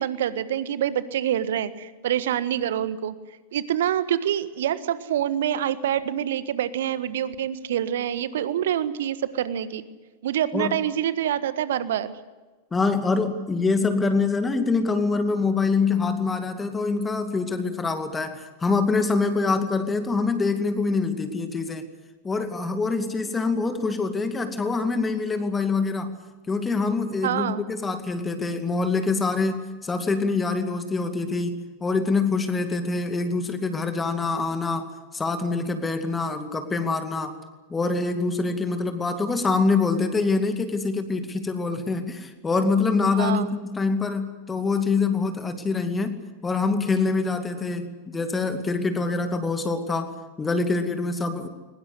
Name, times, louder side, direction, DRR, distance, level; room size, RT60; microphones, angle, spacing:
voice 1, 0.0-3.1 3.5-9.8 10.2-12.1 27.2-27.6 43.1-43.5, right 10 dB, 60° right, 14 dB, 1.5 m, -26 dB
voice 2, 12.7-21.8 22.2-26.1 26.5-37.4 37.7-51.5, left 4 dB, 15° left, 8 dB, 2.4 m, -25 dB
22.5 x 21.0 x 8.2 m, 1.3 s
figure-of-eight pair, 90°, 0 cm